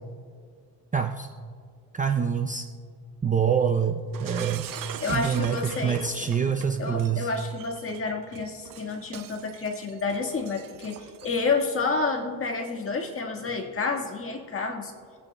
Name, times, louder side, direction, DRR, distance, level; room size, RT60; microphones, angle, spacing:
voice 1, 0.9-1.3 1.9-2.7 3.2-4.7 5.1-7.3, right 7 dB, 20° right, 5 dB, 0.5 m, -26 dB
Shatter, 4.1-11.5, right 9 dB, 55° right, 0.8 m, -41 dB
voice 2, 5.0-6.0 6.8-14.9, left 4 dB, 30° left, 2 dB, 1.6 m, -29 dB
26.5 x 8.8 x 2.2 m, 2.1 s
cardioid pair, 105°, 41 cm